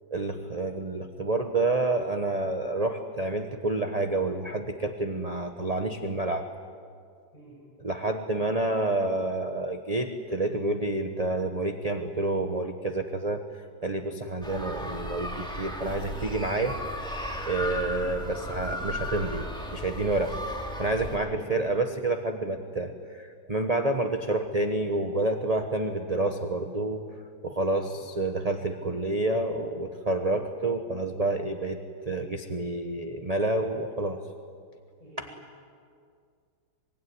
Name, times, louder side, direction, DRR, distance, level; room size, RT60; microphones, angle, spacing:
voice 1, 0.1-6.5 7.8-13.4 13.8-16.8 17.5-19.5 19.7-20.4 20.8-27.0 27.4-34.2 35.2-35.3, right 2 dB, 25° right, 5 dB, 1.1 m, -29 dB
sound 1, 14.4-21.2, equal, ahead, 2.5 m, -35 dB
voice 2, 21.1-21.5 27.9-28.0 35.0-35.3, equal, 20° left, -5 dB, 6.7 m, -46 dB
24.5 x 23.0 x 9.6 m, 2.2 s
omnidirectional pair, 2.1 m